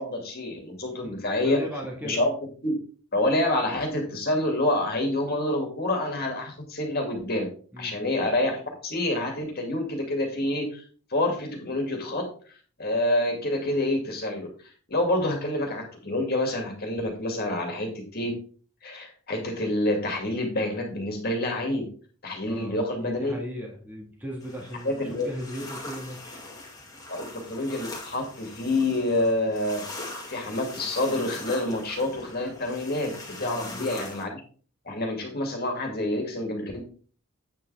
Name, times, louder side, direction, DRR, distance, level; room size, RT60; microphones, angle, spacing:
voice 1, 0.0-1.6 2.0-2.3 2.6-2.7 3.1-7.5 7.8-10.8 11.1-12.2 12.8-14.5 14.9-18.3 18.8-21.9 22.2-23.4 24.8-25.3 27.1-29.8 30.3-33.1 33.4-34.3 34.9-36.8, left 1 dB, 45° left, 1 dB, 2.4 m, -27 dB
voice 2, 1.4-2.2 7.7-8.0 22.4-26.4 33.4-33.9, equal, 10° right, -2 dB, 1.7 m, -37 dB
sound 1, 24.4-34.2, left 2 dB, 15° left, 1.9 m, -41 dB
8.7 x 6.8 x 3.4 m, 0.41 s
head